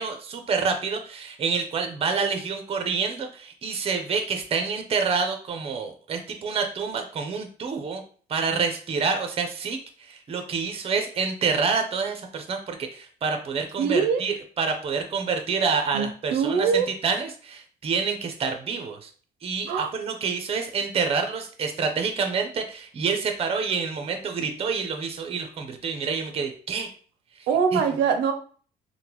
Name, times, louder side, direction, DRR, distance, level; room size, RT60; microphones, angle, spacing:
voice 1, 0.0-8.0 8.3-19.1 19.4-26.9 27.7-27.8, right 5 dB, 35° right, 6 dB, 0.7 m, -27 dB
voice 2, 13.8-14.2 15.9-16.9 19.7-19.9 27.5-28.3, right 6 dB, 85° right, 5 dB, 0.5 m, -23 dB
3.6 x 2.2 x 3.0 m, 0.43 s
cardioid pair, 110°, 17 cm